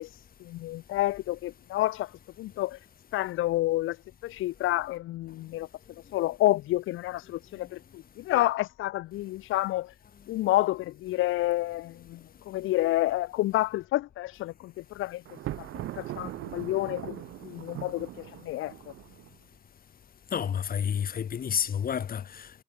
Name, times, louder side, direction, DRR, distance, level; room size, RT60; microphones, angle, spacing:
voice 1, 0.0-2.8 3.1-5.7 6.0-9.9 10.3-18.7, left 16 dB, 90° left, 1.3 m, -29 dB
Thunder, 15.3-19.4, right 15 dB, 85° right, 2.0 m, -40 dB
voice 2, 20.3-22.6, left 8 dB, 45° left, 1.1 m, -30 dB
cardioid pair, 90°, 20 cm